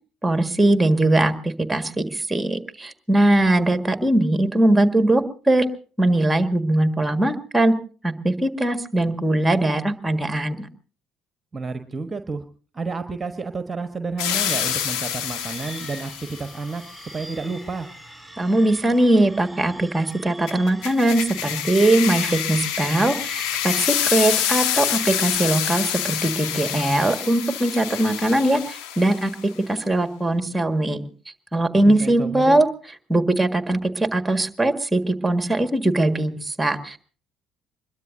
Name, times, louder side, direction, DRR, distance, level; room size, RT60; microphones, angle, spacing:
voice 1, 0.2-5.6 6.0-7.7 8.0-10.7 18.4-29.3 29.7-31.1 31.5-32.7 33.1-37.0, right 1 dB, 10° right, 8 dB, 1.7 m, -20 dB
voice 2, 11.5-12.4 12.7-17.9 31.7-32.6, right 4 dB, 25° right, 8 dB, 1.2 m, -31 dB
sound 1, 14.2-16.5 20.5-29.4, left 10 dB, 65° left, 1.2 m, -27 dB
sound 2, 14.3-25.4, right 1 dB, 5° left, 6.2 m, -42 dB
24.5 x 21.5 x 2.7 m, 0.39 s
figure-of-eight pair, 50°, 0 cm